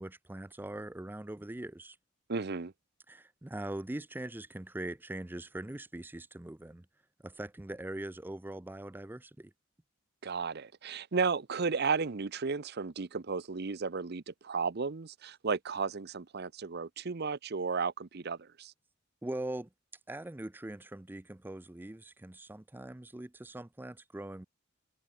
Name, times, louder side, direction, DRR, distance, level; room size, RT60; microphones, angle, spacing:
voice 1, 0.0-2.0 3.1-6.9 7.2-9.5 19.2-19.7 20.1-24.5, right 1 dB, 10° right, 0.4 m, -41 dB
voice 2, 2.3-2.7 10.2-18.7, right 5 dB, 50° right, 0.7 m, -34 dB
head